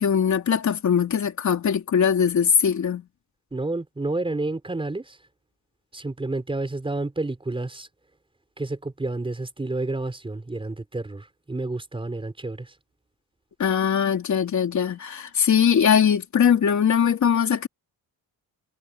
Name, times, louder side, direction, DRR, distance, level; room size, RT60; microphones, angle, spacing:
voice 1, 0.0-3.0 13.6-17.7, left 7 dB, 50° left, 3.7 m, -21 dB
voice 2, 3.5-5.2 5.9-7.9 8.6-12.7, right 2 dB, 15° right, 4.7 m, -30 dB
wide cardioid pair, 165°, 37 cm